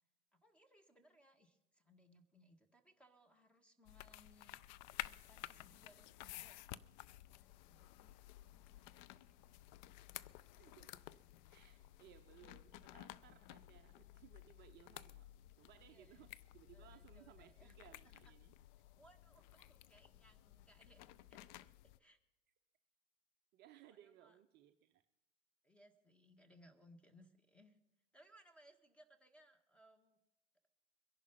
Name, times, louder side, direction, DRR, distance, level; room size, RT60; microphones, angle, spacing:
voice 1, 0.3-4.6 5.0-6.6 7.4-8.2 8.5-9.4 11.7-11.8 15.9-16.3 16.7-18.2 19.0-21.0 21.3-21.5 22.0-22.2 23.9-24.4 25.6-27.8 28.1-30.2, equal, 5° left, 7 dB, 1.6 m, -67 dB
sound 1, 3.9-22.0, left 15 dB, 40° left, 0.5 m, -54 dB
voice 2, 10.6-11.1 11.5-15.3 15.6-18.5 23.5-25.1, right 12 dB, 30° right, 7 dB, 0.7 m, -63 dB
22.5 x 11.0 x 5.5 m, 0.98 s
figure-of-eight pair, 95°, 36 cm